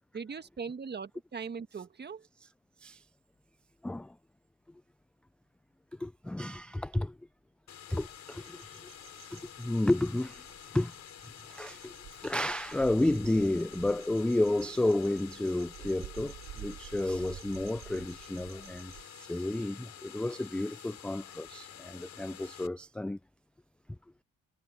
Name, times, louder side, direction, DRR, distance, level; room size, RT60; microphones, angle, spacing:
voice 1, 0.1-2.3, right 5 dB, 30° right, 1.4 m, -40 dB
voice 2, 3.8-4.2 6.0-7.2 7.9-11.0 11.5-12.0 12.2-23.2, left 1 dB, 5° left, 0.3 m, -32 dB
sound 1, 7.7-22.7, left 9 dB, 55° left, 4.3 m, -49 dB
sound 2, 8.0-19.1, right 12 dB, 55° right, 0.8 m, -51 dB
cardioid pair, 100°, 32 cm